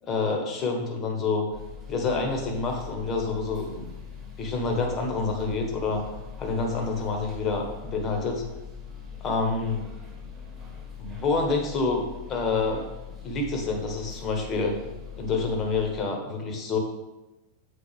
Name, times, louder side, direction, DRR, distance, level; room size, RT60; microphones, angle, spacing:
voice 1, 0.0-1.5 1.9-3.9 4.4-6.0 6.4-8.4 9.2-9.9 11.0-12.9 13.2-14.8 15.2-16.8, left 3 dB, 30° left, 2 dB, 1.2 m, -27 dB
sound 1, 1.5-16.0, left 6 dB, 15° right, 1.9 m, -42 dB
7.2 x 4.0 x 3.4 m, 1.0 s
figure-of-eight pair, 90°, 0 cm